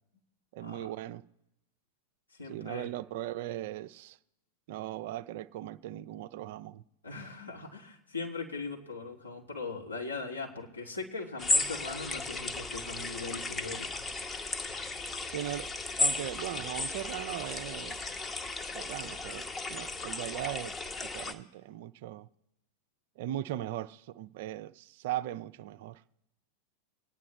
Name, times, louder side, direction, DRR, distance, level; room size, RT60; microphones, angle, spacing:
voice 1, 0.5-1.2 2.5-4.2 4.7-6.8 15.3-15.7 16.0-18.1 18.7-20.8 21.1-22.3 23.2-26.0, right 13 dB, 50° right, 0.5 m, -38 dB
voice 2, 2.4-2.9 7.0-14.0, left 3 dB, 80° left, 2.2 m, -40 dB
sound 1, 11.4-21.3, left 3 dB, 15° left, 1.0 m, -34 dB
24.5 x 9.5 x 3.2 m
figure-of-eight pair, 90°, 0 cm